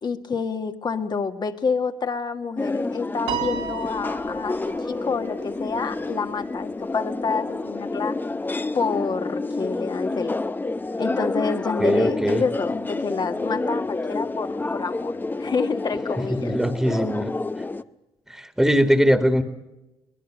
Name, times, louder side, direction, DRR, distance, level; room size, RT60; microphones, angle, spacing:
voice 1, 0.0-8.2 8.7-10.4 11.0-15.1 15.4-16.6, left 5 dB, 45° left, 7 dB, 1.8 m, -28 dB
sound 1, 2.6-17.8, left 3 dB, 20° left, 0.8 m, -29 dB
Piano, 3.3-5.8, right 8 dB, 80° right, 3.2 m, -33 dB
voice 2, 11.8-12.4 16.4-17.3 18.3-19.4, equal, 5° right, 8 dB, 2.0 m, -20 dB
23.0 x 20.5 x 6.4 m, 1.0 s
supercardioid pair, 70°, 11 cm